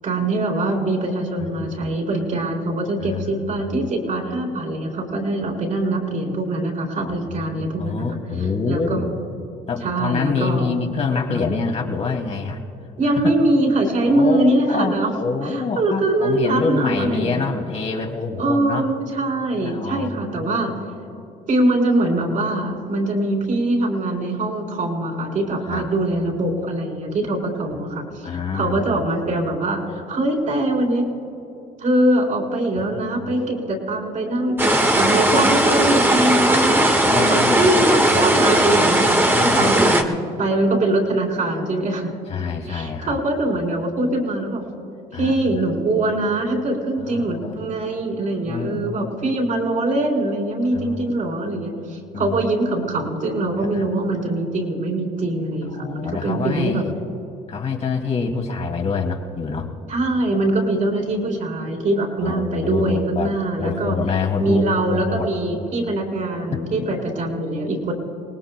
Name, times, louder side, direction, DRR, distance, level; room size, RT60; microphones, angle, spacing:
voice 1, 0.0-8.0 8.7-9.1 9.8-10.7 11.3-11.6 13.0-15.1 15.4-17.4 18.4-20.7 21.5-31.0 31.8-36.9 37.2-42.1 42.7-44.6 45.1-56.8 59.9-63.9 64.4-67.9, right 2 dB, 50° right, 0 dB, 4.1 m, -22 dB
voice 2, 1.4-2.0 3.0-3.4 3.7-3.8 7.4-9.1 9.7-12.6 13.1-13.4 14.1-18.9 19.6-20.6 25.7-25.9 27.7-27.8 28.2-29.0 32.8-33.1 37.0-37.7 38.0-38.5 39.3-39.8 42.3-43.2 45.1-45.6 47.0-47.6 48.4-49.2 50.7-51.1 52.1-52.4 53.6-53.9 55.7-57.0 57.5-59.7 62.2-65.3, left 4 dB, 40° left, 1 dB, 2.4 m, -26 dB
sound 1, 34.6-40.0, right 1 dB, 15° right, 1.5 m, -17 dB
28.5 x 19.0 x 2.3 m, 2.8 s
cardioid pair, 110°, 17 cm